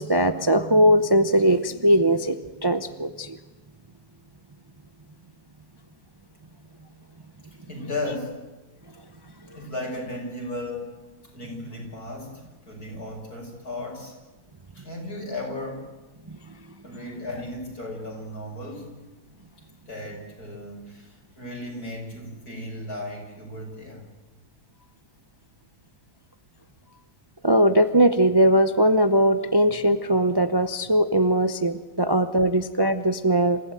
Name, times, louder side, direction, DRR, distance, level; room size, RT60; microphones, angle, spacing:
voice 1, 0.0-3.4 27.4-33.6, right 1 dB, 25° right, 9 dB, 0.6 m, -20 dB
voice 2, 7.7-8.5 9.5-14.1 14.7-15.9 16.8-18.9 19.9-24.1, left 1 dB, 75° left, 1 dB, 6.6 m, -35 dB
27.5 x 16.0 x 9.2 m, 1.2 s
omnidirectional pair, 1.6 m